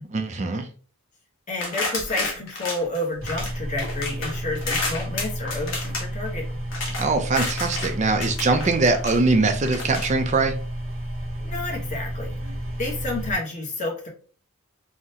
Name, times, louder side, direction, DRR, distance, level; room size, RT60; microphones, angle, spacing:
voice 1, 0.1-0.7 7.0-10.5, right 3 dB, 30° right, 0.4 m, -22 dB
voice 2, 1.5-6.5 11.4-12.5 12.8-14.1, left 2 dB, 35° left, 0.9 m, -30 dB
sound 1, 1.6-3.5 3.8-7.9 8.2-9.2 9.6-10.1, left 3 dB, 60° left, 1.0 m, -30 dB
sound 2, 3.2-13.3, right 1 dB, 65° right, 0.8 m, -32 dB
3.6 x 2.1 x 2.7 m
head